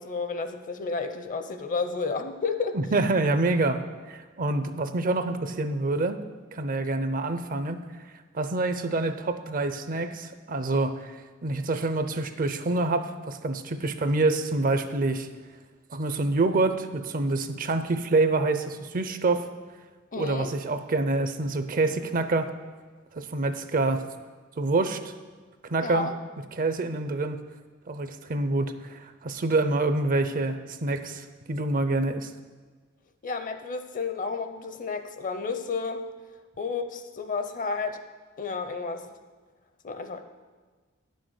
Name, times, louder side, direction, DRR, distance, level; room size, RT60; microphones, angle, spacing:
voice 1, 0.0-2.8 20.1-20.5 25.8-26.1 33.2-36.1 36.6-38.0 38.4-39.1 39.8-40.2, left 4 dB, 40° left, 8 dB, 0.7 m, -31 dB
voice 2, 2.7-3.8 4.1-6.2 6.5-7.8 8.3-11.1 11.4-15.3 15.9-19.5 20.2-22.5 23.1-24.0 24.6-25.1 25.7-26.1 26.5-27.4 27.9-32.3, right 2 dB, 45° right, 9 dB, 0.6 m, -26 dB
9.7 x 6.4 x 6.4 m, 1.4 s
head